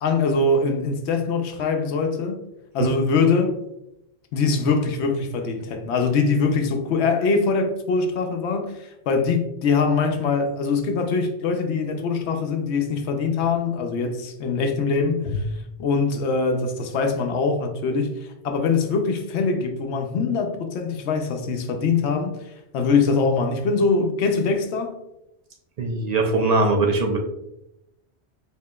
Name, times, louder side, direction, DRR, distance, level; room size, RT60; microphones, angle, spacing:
voice 1, 0.0-2.4 2.7-3.5 4.3-15.5 15.8-25.0, left 4 dB, 75° left, 0.9 m, -23 dB
voice 2, 25.8-27.2, right 3 dB, 55° right, 0.4 m, -21 dB
4.8 x 2.8 x 2.2 m
omnidirectional pair, 1.2 m